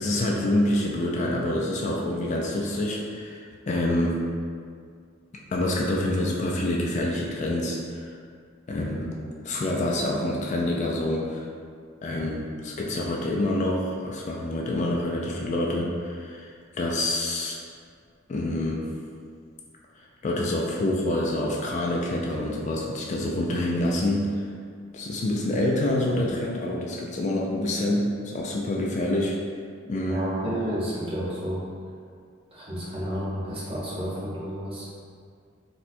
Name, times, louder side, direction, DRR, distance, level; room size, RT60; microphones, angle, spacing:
voice 1, 0.0-4.2 5.5-8.1 8.7-11.5 12.0-17.6 18.3-18.8 20.2-24.4 24.9-29.4 29.8-30.3, left 1 dB, 35° left, -2 dB, 0.3 m, -27 dB
voice 2, 30.1-31.6 32.5-34.9, equal, 30° right, -7 dB, 0.7 m, -31 dB
4.1 x 2.2 x 2.5 m, 2.1 s
head